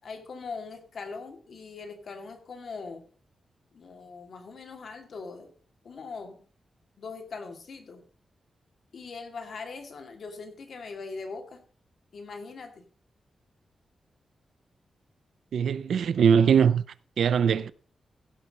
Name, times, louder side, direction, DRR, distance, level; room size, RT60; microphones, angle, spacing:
voice 1, 0.0-3.0 3.7-5.5 5.8-6.4 7.0-8.0 8.9-11.6 12.1-12.8, left 4 dB, 60° left, 2.4 m, -41 dB
voice 2, 15.5-16.8 17.2-17.7, right 7 dB, 85° right, 0.5 m, -21 dB
16.0 x 6.0 x 5.3 m
wide cardioid pair, 135°, 0 cm